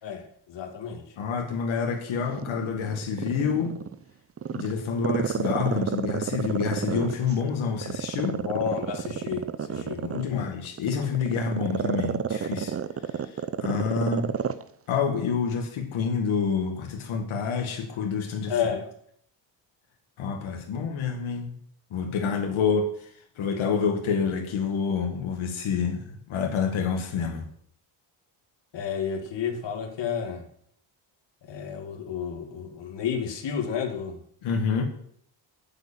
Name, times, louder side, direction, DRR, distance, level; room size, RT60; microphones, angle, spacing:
voice 1, 0.0-1.0 8.4-10.5 18.5-18.9 28.7-30.5 31.4-34.2, left 7 dB, 60° left, 4 dB, 2.2 m, -31 dB
voice 2, 1.2-3.8 4.5-8.4 9.8-12.8 13.1-14.3 14.9-18.5 20.2-21.5 21.9-23.1 23.4-27.5 34.4-34.8, left 5 dB, 80° left, 3 dB, 2.0 m, -28 dB
Growling, 2.2-3.9 4.4-7.4 7.8-14.6 14.9-15.0, right 7 dB, 30° right, 0.6 m, -30 dB
8.6 x 8.1 x 9.0 m, 0.65 s
cardioid pair, 135°, 47 cm